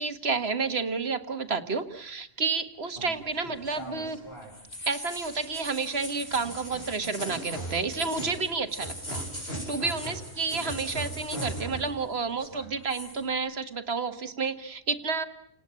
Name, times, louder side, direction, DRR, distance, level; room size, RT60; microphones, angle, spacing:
voice 1, 0.0-4.2 4.9-15.3, right 4 dB, 75° right, 8 dB, 1.9 m, -30 dB
sound 1, 3.0-12.1 12.3-13.2, right 1 dB, 75° left, 8.4 m, -38 dB
29.5 x 19.5 x 8.8 m, 0.71 s
omnidirectional pair, 1.1 m